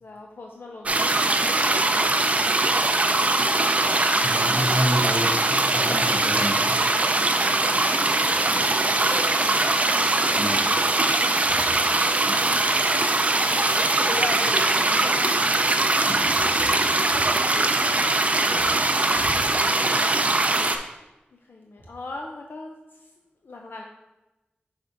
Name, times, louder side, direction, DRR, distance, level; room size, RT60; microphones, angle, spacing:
voice 1, 0.0-3.1 3.9-4.0 7.0-7.9 8.2-9.2 9.7-11.4 13.4-15.3 19.4-20.2 21.3-22.7 23.0-23.1 23.4-23.8, left 3 dB, 70° left, 1 dB, 0.5 m, -40 dB
sound 1, 0.8-20.8, right 2 dB, 35° right, 0.5 m, -21 dB
voice 2, 4.2-6.8 10.4-10.6 12.2-12.6 16.0-16.7 19.1-19.4, equal, 40° left, -1 dB, 1.3 m, -29 dB
6.3 x 3.6 x 4.5 m, 1.0 s
wide cardioid pair, 100°, 4 cm